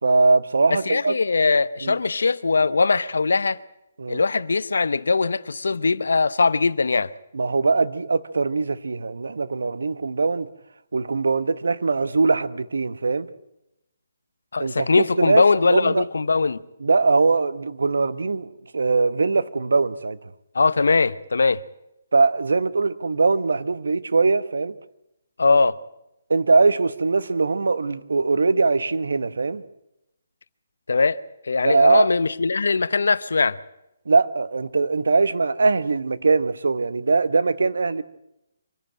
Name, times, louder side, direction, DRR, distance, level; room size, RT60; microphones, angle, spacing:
voice 1, 0.0-1.1 1.8-2.0 4.0-4.2 7.3-10.5 10.9-13.3 14.6-16.1 16.8-20.2 22.1-24.7 26.3-29.6 31.6-32.1 34.1-38.0, right 4 dB, 80° right, 1.1 m, -21 dB
voice 2, 0.7-3.6 4.1-7.1 14.5-16.6 20.5-21.6 25.4-25.8 30.9-31.2 31.4-33.6, left 4 dB, 80° left, 0.8 m, -20 dB
25.0 x 12.0 x 8.8 m
hypercardioid pair, 150°, 0 cm